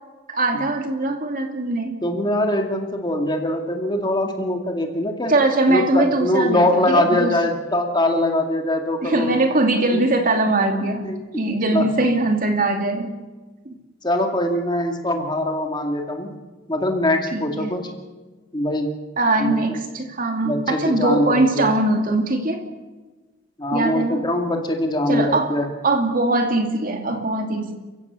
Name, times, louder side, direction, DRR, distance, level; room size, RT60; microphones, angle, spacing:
voice 1, 0.3-1.9 5.3-7.3 9.0-11.1 11.3-13.1 13.6-13.7 17.3-17.7 19.2-22.6 23.7-24.2 25.1-25.5 25.8-27.7, right 2 dB, 45° right, 4 dB, 2.5 m, -21 dB
voice 2, 2.0-5.3 5.7-9.4 9.9-10.0 11.0-11.4 11.7-12.1 14.0-16.3 16.7-17.8 18.5-18.9 19.4-19.8 20.4-21.7 23.6-25.7, left 1 dB, 25° left, 3 dB, 2.3 m, -22 dB
29.5 x 16.0 x 7.0 m, 1.2 s
head